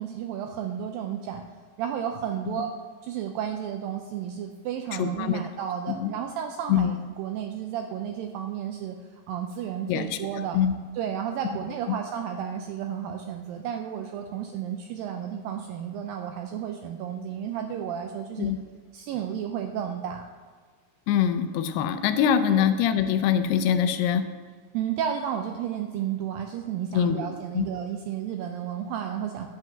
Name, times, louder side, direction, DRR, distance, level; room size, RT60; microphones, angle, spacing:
voice 1, 0.0-1.4 1.8-2.7 3.0-9.0 9.3-10.6 10.9-18.5 18.9-20.2 22.6-22.7 24.7-29.5, right 9 dB, 80° right, 4 dB, 2.0 m, -32 dB
voice 2, 5.0-5.4 5.9-6.1 6.7-6.9 9.9-10.2 10.5-10.7 18.4-18.6 21.1-24.2 26.9-27.7, left 8 dB, 80° left, 8 dB, 2.6 m, -24 dB
11.5 x 5.5 x 7.3 m, 1.5 s
omnidirectional pair, 4.6 m